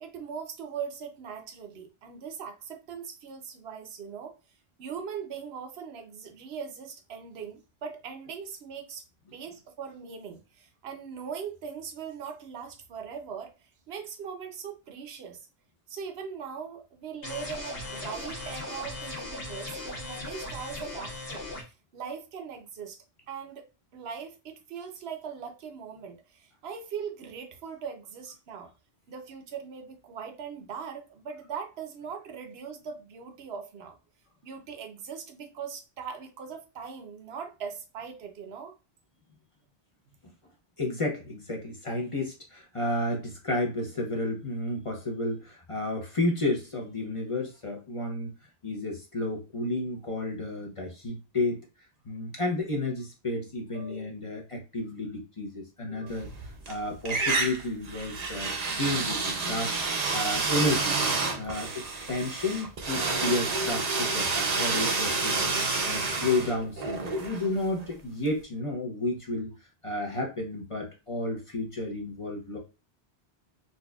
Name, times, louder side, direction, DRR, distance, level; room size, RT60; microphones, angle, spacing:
voice 1, 0.0-4.3 4.8-9.0 9.3-15.4 15.9-23.0 23.3-28.7 29.1-34.0 34.4-38.7 53.7-54.1 55.9-56.2, right 6 dB, 70° right, 0.9 m, -40 dB
sound 1, 17.2-21.6, left 2 dB, 60° left, 1.3 m, -38 dB
voice 2, 40.8-48.3 48.6-51.6 52.0-61.0 61.4-65.5 65.8-69.5 69.8-72.6, left 2 dB, 35° left, 0.7 m, -31 dB
sound 2, 56.1-56.7 57.0-67.9, right 3 dB, 45° right, 0.6 m, -29 dB
4.1 x 2.5 x 2.3 m
omnidirectional pair, 1.1 m